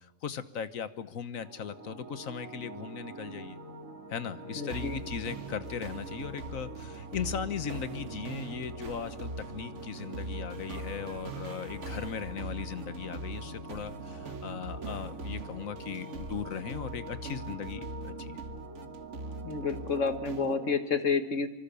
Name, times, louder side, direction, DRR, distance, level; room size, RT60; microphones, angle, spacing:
voice 1, 0.0-3.6 4.1-18.4, left 7 dB, 85° left, 13 dB, 1.5 m, -38 dB
sound 1, 1.3-20.8, right 2 dB, 80° right, 2.5 m, -45 dB
voice 2, 4.6-5.0 19.4-21.5, left 5 dB, 65° left, 9 dB, 1.9 m, -29 dB
sound 2, 4.7-20.6, right 3 dB, 65° right, 1.8 m, -42 dB
25.0 x 25.0 x 6.9 m, 0.97 s
omnidirectional pair, 1.4 m